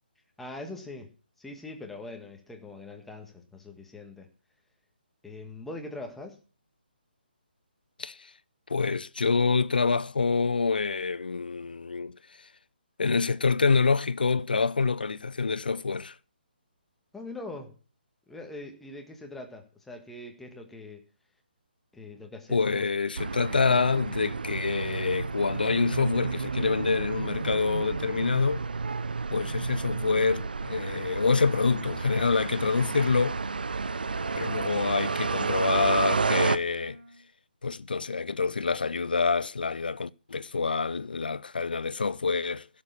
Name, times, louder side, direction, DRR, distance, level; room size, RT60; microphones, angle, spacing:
voice 1, 0.4-1.1 1.4-4.3 5.2-6.4 17.1-17.8 18.3-21.0 21.9-22.9, left 2 dB, 5° left, 1.9 m, -42 dB
voice 2, 8.0-8.3 8.7-12.2 13.0-16.2 22.5-28.6 29.3-33.4 34.3-37.0 37.6-42.7, left 4 dB, 60° left, 0.6 m, -26 dB
sound 1, 23.2-36.6, right 4 dB, 60° right, 0.8 m, -31 dB
Wind instrument woodwind instrument, 29.7-37.3, right 1 dB, 80° right, 4.3 m, -55 dB
16.0 x 7.4 x 5.8 m
figure-of-eight pair, 140°, 6 cm